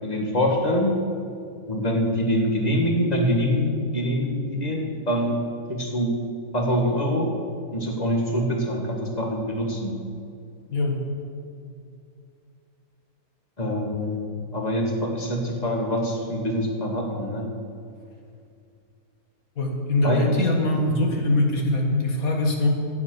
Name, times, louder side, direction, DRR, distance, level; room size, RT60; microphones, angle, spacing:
voice 1, 0.0-1.0 1.7-5.4 5.7-6.2 6.5-7.3 7.7-10.0 13.6-17.5 20.0-20.5, equal, 30° left, 1 dB, 1.8 m, -24 dB
voice 2, 10.7-11.1 19.6-22.7, left 2 dB, 70° left, 1 dB, 2.1 m, -22 dB
11.5 x 9.4 x 7.9 m, 2.4 s
omnidirectional pair, 1.5 m